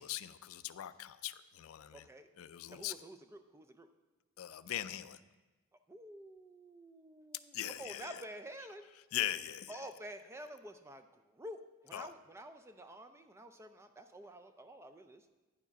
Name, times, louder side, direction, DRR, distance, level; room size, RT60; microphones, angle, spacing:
voice 1, 0.0-2.1 2.4-2.9 4.4-5.2 7.5-8.2 9.1-9.8 11.9-12.1, left 12 dB, 75° left, 14 dB, 0.3 m, -40 dB
voice 2, 1.9-2.3 2.7-3.9 5.9-8.9 9.7-15.2, right 1 dB, 10° right, 8 dB, 0.4 m, -50 dB
9.8 x 4.8 x 5.7 m, 1.2 s
head